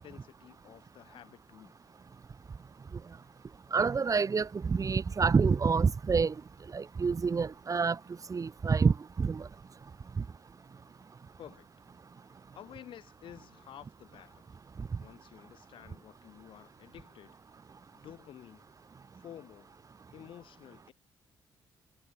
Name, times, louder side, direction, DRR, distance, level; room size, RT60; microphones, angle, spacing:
voice 1, 0.0-1.7 11.4-11.7 12.5-14.4 15.0-17.4 17.9-18.7 19.2-19.7 20.1-20.9, left 11 dB, 60° left, 6.7 m, -51 dB
voice 2, 3.7-6.3 6.7-8.0 8.3-9.5, right 5 dB, 35° right, 1.2 m, -27 dB
hypercardioid pair, 45°, 9 cm